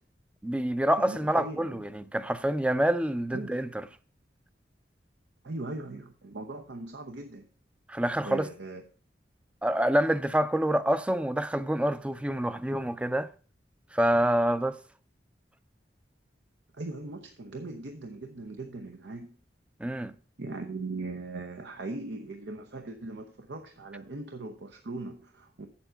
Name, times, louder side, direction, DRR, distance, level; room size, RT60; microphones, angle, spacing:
voice 1, 0.4-3.7 7.9-8.5 9.6-13.3 13.9-14.8 19.8-20.1, right 1 dB, 5° right, 0.4 m, -27 dB
voice 2, 1.1-1.8 3.3-3.6 5.4-7.4 8.2-8.8 16.7-19.3 20.4-25.7, right 2 dB, 85° right, 0.8 m, -39 dB
7.8 x 7.1 x 5.6 m
head